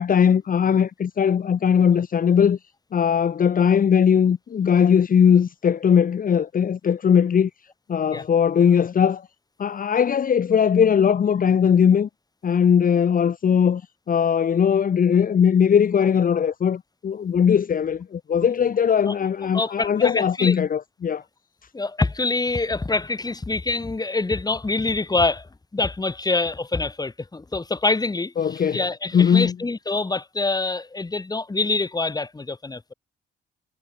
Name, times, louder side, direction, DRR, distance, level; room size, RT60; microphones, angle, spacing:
voice 1, 0.0-2.6 2.9-7.5 7.9-9.3 9.6-12.1 12.4-13.8 14.1-21.2 28.4-28.8 29.1-29.5, left 7 dB, 45° left, 1.3 m, -19 dB
voice 2, 19.5-20.6 21.7-25.5 25.7-32.9, left 3 dB, 20° left, 2.7 m, -25 dB
cardioid pair, 90°, 20 cm